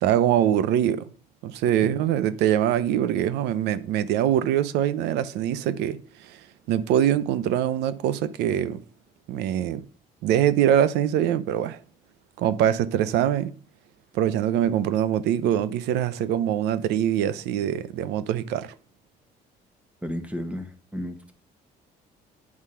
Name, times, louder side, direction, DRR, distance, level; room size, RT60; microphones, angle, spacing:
voice 1, 0.0-1.1 1.4-6.0 6.3-6.4 6.7-8.8 9.3-9.8 10.2-11.8 12.4-13.5 14.1-18.7, right 10 dB, 90° right, 0.7 m, -23 dB
voice 2, 20.0-21.3, equal, 10° right, 1.4 m, -33 dB
9.6 x 4.8 x 5.7 m
cardioid pair, 110°, 17 cm